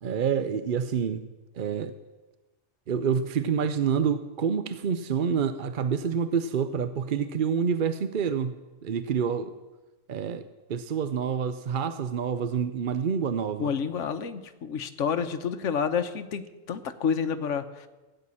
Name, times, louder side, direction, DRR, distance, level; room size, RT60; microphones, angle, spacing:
voice 1, 0.0-1.3 1.5-1.9 2.9-8.5 8.8-9.5 10.1-13.7, right 7 dB, 50° right, 11 dB, 0.6 m, -27 dB
voice 2, 13.6-17.9, left 6 dB, 60° left, 8 dB, 1.2 m, -29 dB
16.5 x 7.9 x 9.9 m, 1.2 s
omnidirectional pair, 1.5 m